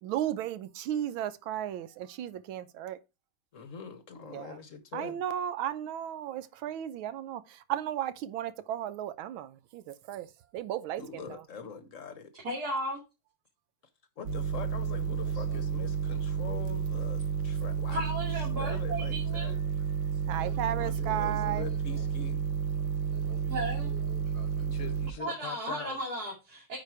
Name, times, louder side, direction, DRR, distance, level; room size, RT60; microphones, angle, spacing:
voice 1, 0.0-3.0 4.3-4.6 4.9-10.3 10.5-11.2 20.3-21.7, right 11 dB, 90° right, 1.5 m, -34 dB
voice 2, 3.5-5.2 11.0-12.3 14.2-18.3 18.6-19.6 20.7-22.4 24.6-26.0, left 5 dB, 50° left, 1.0 m, -43 dB
voice 3, 12.4-13.0 17.9-19.5 23.5-23.9 25.2-26.8, right 1 dB, 50° right, 3.0 m, -35 dB
sound 1, 14.3-25.1, right 6 dB, 70° right, 1.6 m, -31 dB
voice 4, 15.2-15.6 20.4-22.0 23.1-24.7, right 5 dB, 30° right, 4.5 m, -52 dB
9.1 x 4.8 x 4.6 m
omnidirectional pair, 2.2 m